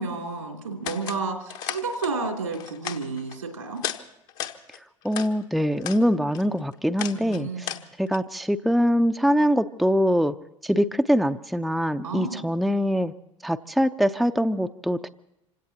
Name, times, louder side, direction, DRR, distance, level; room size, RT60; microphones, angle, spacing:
voice 1, 0.0-3.8 7.1-7.7 12.0-12.5, right 4 dB, 80° right, 2 dB, 3.0 m, -31 dB
sound 1, 0.8-1.2 1.5-2.1 2.5-3.4 3.8-4.0 4.3-5.3 5.7-6.0 6.3-8.2, left 11 dB, 55° left, 1.2 m, -34 dB
voice 2, 5.0-7.7 8.0-10.3 10.6-13.1 13.4-15.1, equal, ahead, 8 dB, 0.6 m, -23 dB
27.0 x 17.0 x 2.9 m, 0.85 s
figure-of-eight pair, 65°, 17 cm